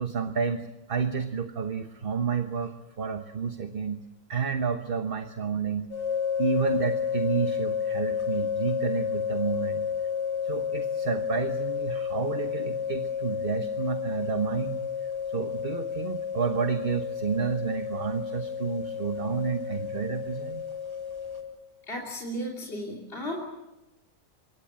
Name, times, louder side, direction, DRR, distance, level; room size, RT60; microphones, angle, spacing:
voice 1, 0.0-4.0 4.3-5.9 6.4-9.9 10.4-20.6, right 6 dB, 40° right, 7 dB, 1.2 m, -30 dB
sound 1, 5.9-21.4, left 7 dB, 15° left, 4.2 m, -31 dB
voice 2, 21.9-23.4, equal, 40° left, -2 dB, 3.3 m, -34 dB
25.5 x 22.5 x 7.6 m, 1.0 s
omnidirectional pair, 1.6 m